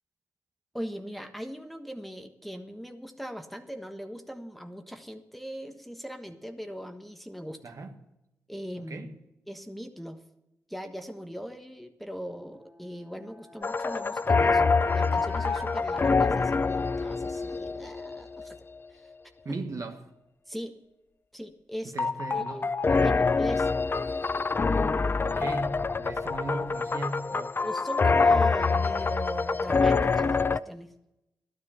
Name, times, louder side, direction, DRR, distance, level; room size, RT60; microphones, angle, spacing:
voice 1, 0.7-7.6 8.5-9.2 9.5-10.2 10.7-18.6 18.9-19.1 19.5-19.6 20.5-20.8 21.3-21.9 22.3-22.7 23.0-23.7 27.6-30.9, equal, ahead, 1.3 m, -40 dB
voice 2, 7.6-8.0 8.9-9.1 19.4-20.0 21.9-23.2 25.2-27.6, right 2 dB, 55° right, 1.4 m, -37 dB
sound 1, 12.5-16.8, right 1 dB, 40° right, 2.9 m, -50 dB
sound 2, 13.6-18.6 22.0-30.6, left 4 dB, 35° left, 0.4 m, -25 dB
12.5 x 9.8 x 5.7 m
supercardioid pair, 50°, 6 cm